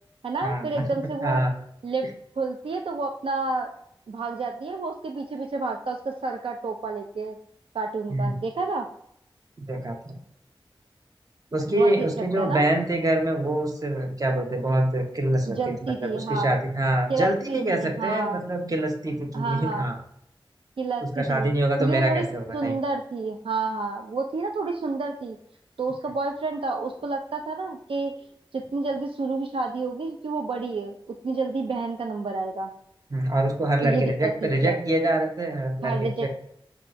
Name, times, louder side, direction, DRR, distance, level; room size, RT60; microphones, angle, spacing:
voice 1, 0.2-1.4 1.8-2.1 2.4-3.7 4.1-7.4 7.7-8.9 11.7-12.1 12.4-12.7 15.5-16.6 17.1-18.4 19.3-19.9 20.8-21.5 21.8-22.2 22.5-25.4 25.8-28.1 28.5-32.7 33.8-34.8 35.8-36.3, right 3 dB, 80° right, 3 dB, 0.3 m, -29 dB
voice 2, 9.6-10.1 11.5-15.6 15.8-19.9 21.2-22.7 33.1-36.3, right 1 dB, 40° right, 3 dB, 0.8 m, -25 dB
5.4 x 2.3 x 2.5 m, 0.72 s
wide cardioid pair, 65°, 9 cm